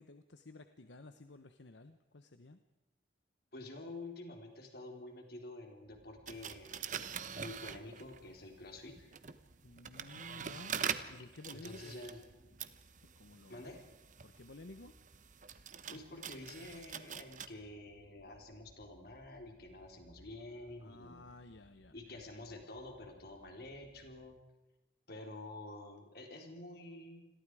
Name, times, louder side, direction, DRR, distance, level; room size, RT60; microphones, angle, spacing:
voice 1, 0.0-2.6 9.6-12.0 13.2-13.7 14.2-14.9 20.8-22.2, left 2 dB, 75° left, 9 dB, 1.0 m, -54 dB
voice 2, 3.5-6.8 7.3-9.2 11.5-12.2 13.5-13.9 15.9-21.3 21.9-24.4 25.1-27.3, left 2 dB, 55° left, 3 dB, 4.2 m, -49 dB
sound 1, 5.9-24.4, equal, 90° right, 2.2 m, -66 dB
sound 2, 6.3-8.3 9.0-17.5, right 7 dB, 45° right, 1.1 m, -44 dB
29.0 x 22.0 x 4.9 m, 1.0 s
head